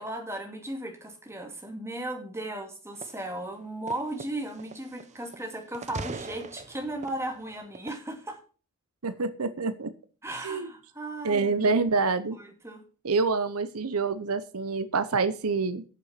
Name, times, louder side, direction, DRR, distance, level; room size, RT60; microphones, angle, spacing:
voice 1, 0.0-8.4 10.2-11.7 12.3-12.8, right 1 dB, 10° right, 3 dB, 2.4 m, -36 dB
sound 1, 3.0-3.3 3.9-5.5 5.7-8.0, right 3 dB, 30° right, 0.7 m, -41 dB
voice 2, 9.0-9.9 10.4-10.7 11.2-12.4 13.0-15.8, right 4 dB, 75° right, 13 dB, 0.8 m, -27 dB
8.8 x 6.9 x 7.3 m, 0.38 s
head